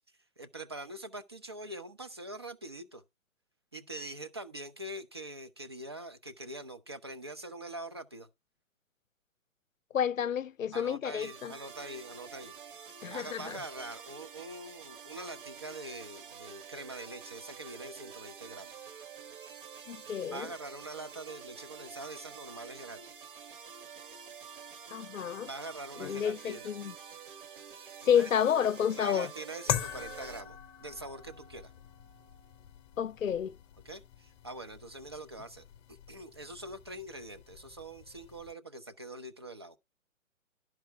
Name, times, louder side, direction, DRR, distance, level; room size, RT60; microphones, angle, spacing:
voice 1, 0.4-3.0 3.7-8.3 10.7-12.5 13.1-18.7 20.3-23.1 25.4-26.7 28.0-28.3 28.9-31.7 33.8-39.8, right 1 dB, 20° right, 0.4 m, -44 dB
voice 2, 9.9-11.5 13.0-13.6 19.9-20.5 24.9-25.5 26.0-26.9 28.0-29.3 33.0-33.6, left 8 dB, 75° left, 0.5 m, -30 dB
sound 1, 11.2-30.4, right 7 dB, 40° right, 1.1 m, -48 dB
sound 2, 29.7-38.5, left 11 dB, 20° left, 0.9 m, -42 dB
12.0 x 4.5 x 5.7 m
figure-of-eight pair, 130°, 41 cm